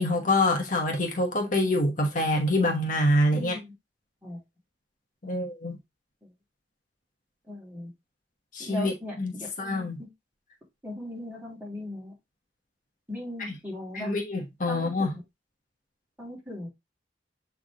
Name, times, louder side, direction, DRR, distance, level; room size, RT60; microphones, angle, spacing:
voice 1, 0.0-3.6 5.2-5.8 8.5-9.3 9.6-10.0 13.9-15.1, left 1 dB, 45° left, 1.2 m, -26 dB
voice 2, 3.3-3.7 4.2-4.4 5.2-5.4 6.2-6.3 7.5-7.9 8.6-10.1 10.8-12.1 13.1-14.1 14.7-15.2 16.2-16.7, left 1 dB, 10° right, 3.0 m, -39 dB
7.6 x 3.5 x 3.7 m
head